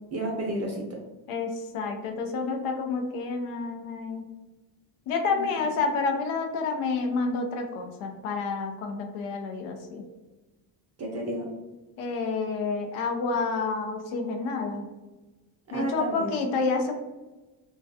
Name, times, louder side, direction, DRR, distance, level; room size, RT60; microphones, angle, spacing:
voice 1, 0.1-1.0 5.3-5.5 11.0-11.5 15.7-16.4, right 1 dB, 30° right, -1 dB, 0.6 m, -31 dB
voice 2, 1.3-4.2 5.1-10.0 12.0-14.9 15.7-16.9, left 4 dB, 85° left, 4 dB, 0.6 m, -29 dB
2.2 x 2.2 x 2.6 m, 1.1 s
cardioid pair, 90°, 49 cm